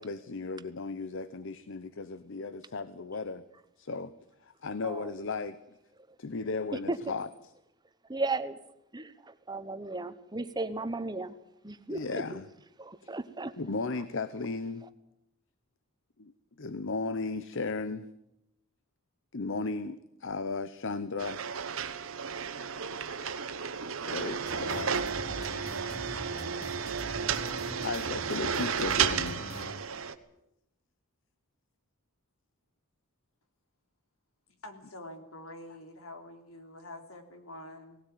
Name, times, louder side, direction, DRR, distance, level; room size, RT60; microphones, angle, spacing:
voice 1, 0.0-3.4 3.8-4.1 4.4-5.6 6.2-7.5 11.9-12.5 13.6-14.8 16.2-16.3 16.6-18.1 19.3-21.4 24.0-25.1 27.8-29.5, left 3 dB, 60° left, 0.8 m, -35 dB
voice 2, 8.1-8.6 8.9-11.3 11.6-12.2 12.8-13.5, right 2 dB, 20° right, 1.1 m, -35 dB
sound 1, 21.2-30.1, right 7 dB, 75° right, 1.3 m, -33 dB
sound 2, 24.4-29.7, equal, 30° left, 3.1 m, -43 dB
voice 3, 34.6-38.0, left 1 dB, 85° left, 3.4 m, -46 dB
18.5 x 17.5 x 9.3 m
head